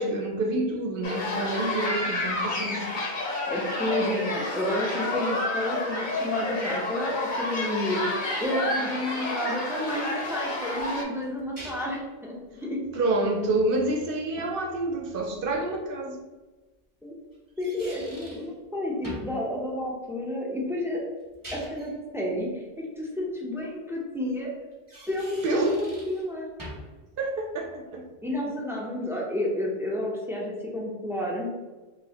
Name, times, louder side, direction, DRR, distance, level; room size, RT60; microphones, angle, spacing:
voice 1, 0.0-3.0 12.9-16.2 25.4-25.8 27.2-28.1, right 2 dB, 60° right, 2 dB, 0.7 m, -28 dB
sound 1, 1.0-11.0, left 2 dB, 50° left, 0.7 m, -30 dB
voice 2, 3.5-8.1 8.4-12.8 17.0-17.1 17.6-21.0 21.5-24.5 25.1-26.5 28.2-31.5, left 1 dB, 5° right, -3 dB, 0.4 m, -31 dB
sound 2, 10.8-12.1 15.3-15.4 17.3-18.5 19.0-19.4 21.2-21.9 24.7-26.3 26.6-27.0, right 1 dB, 20° right, 0.8 m, -43 dB
3.1 x 3.0 x 2.7 m, 1.2 s
omnidirectional pair, 1.1 m